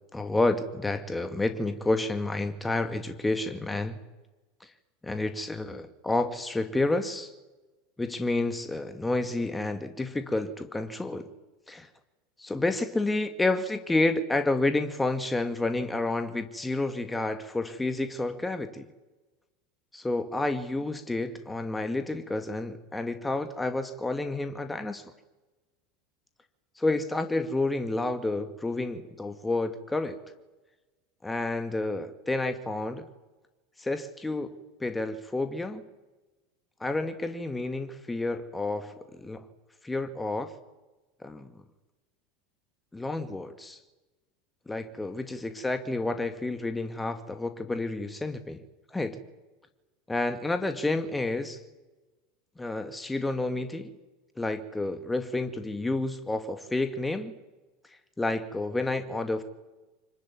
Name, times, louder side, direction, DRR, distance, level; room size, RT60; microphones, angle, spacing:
voice 1, 0.1-3.9 4.6-4.7 5.0-7.3 8.0-11.3 11.7-11.9 12.4-18.9 19.9-25.1 26.8-30.2 31.2-33.1 33.8-34.5 34.8-35.8 36.8-39.5 39.8-40.5 41.2-41.5 42.9-43.8 44.7-48.6 48.9-49.2 50.1-51.6 52.6-53.9 54.4-57.3 58.2-59.4, left 2 dB, 10° left, 2.1 m, -30 dB
25.5 x 21.5 x 9.4 m
hypercardioid pair, 85°, 0 cm